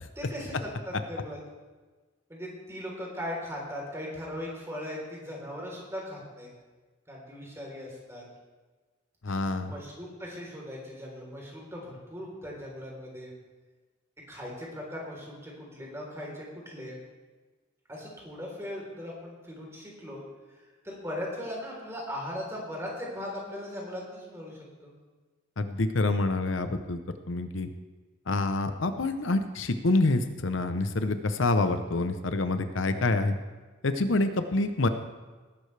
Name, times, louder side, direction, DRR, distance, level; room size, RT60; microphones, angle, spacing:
voice 1, 0.2-1.4 2.3-6.5 7.1-8.2 9.7-13.3 14.3-17.0 17.9-20.2 20.6-24.9, left 1 dB, 15° right, -3 dB, 3.7 m, -39 dB
voice 2, 9.2-9.7 25.6-27.0 27.3-27.7 28.3-33.4 33.8-34.9, left 2 dB, 70° left, 9 dB, 0.8 m, -27 dB
19.0 x 11.5 x 3.4 m, 1.3 s
head